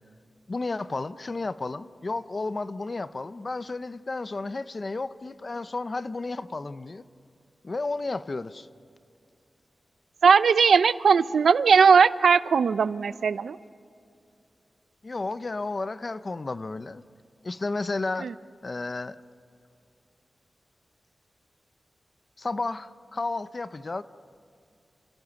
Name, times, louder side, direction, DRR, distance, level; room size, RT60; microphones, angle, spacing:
voice 1, 0.5-7.0 7.6-8.7 15.0-17.0 17.4-18.3 18.6-19.2 22.4-24.0, left 3 dB, 35° left, 0.7 m, -32 dB
voice 2, 10.2-13.6 18.2-18.3, right 6 dB, 85° right, 0.6 m, -19 dB
29.0 x 27.5 x 7.1 m
wide cardioid pair, 155°, 0 cm